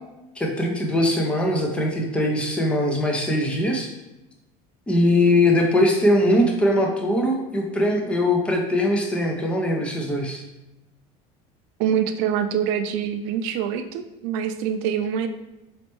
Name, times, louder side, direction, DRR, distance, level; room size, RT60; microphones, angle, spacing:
voice 1, 0.4-3.9 4.9-10.4, left 1 dB, 5° left, 2 dB, 0.4 m, -21 dB
voice 2, 11.8-15.3, right 8 dB, 75° right, 8 dB, 0.4 m, -25 dB
4.2 x 3.1 x 3.0 m, 0.98 s
cardioid pair, 165°, 15 cm